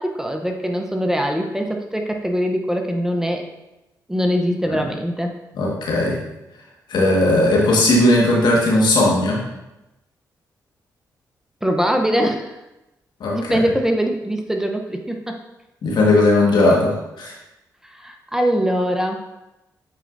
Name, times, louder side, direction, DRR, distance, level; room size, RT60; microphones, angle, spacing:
voice 1, 0.0-3.5 4.1-5.4 11.6-12.5 13.3-15.4 17.8-19.2, equal, 5° right, 3 dB, 0.8 m, -22 dB
voice 2, 5.6-6.2 6.9-9.4 13.2-13.6 15.8-17.3, left 2 dB, 70° left, -3 dB, 1.6 m, -17 dB
8.3 x 4.5 x 2.6 m, 0.96 s
supercardioid pair, 55°, 8 cm